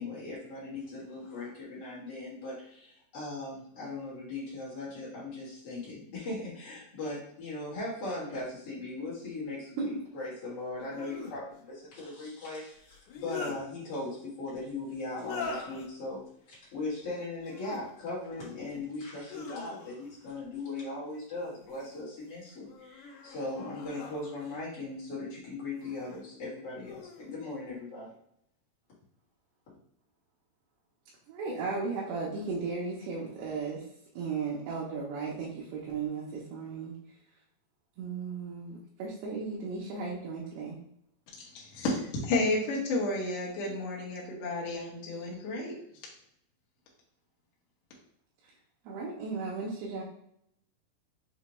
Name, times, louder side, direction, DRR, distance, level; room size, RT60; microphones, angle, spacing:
voice 1, 0.0-16.2 16.5-28.1, left 2 dB, 55° left, -8 dB, 1.7 m, -39 dB
sound 1, 8.4-8.5 10.8-11.4 12.9-13.6 15.1-15.9 17.4-17.8 18.3-18.9 19.3-20.2 21.4-22.0 22.6-24.6 25.7-26.2 26.8-27.3, left 5 dB, 90° left, 2.7 m, -43 dB
voice 2, 31.3-33.9 34.2-37.2 38.0-40.8 48.4-48.5 48.8-50.0, right 4 dB, 85° right, -4 dB, 2.8 m, -35 dB
voice 3, 41.4-45.8, left 2 dB, 75° left, -4 dB, 1.5 m, -31 dB
6.5 x 2.2 x 3.0 m, 0.72 s
omnidirectional pair, 4.5 m